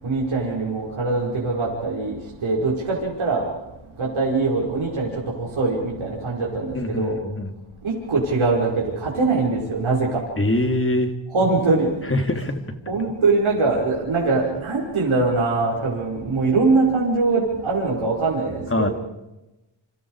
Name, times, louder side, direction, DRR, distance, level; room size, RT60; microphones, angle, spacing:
voice 1, 0.0-3.5 4.0-7.2 7.8-10.2 11.3-11.9 12.9-18.9, right 3 dB, 75° right, -3 dB, 5.5 m, -22 dB
voice 2, 6.7-7.5 10.4-11.1 12.1-12.6 18.7-18.9, left 1 dB, 25° left, 6 dB, 3.0 m, -23 dB
29.0 x 27.0 x 4.9 m, 0.97 s
cardioid pair, 75°, 49 cm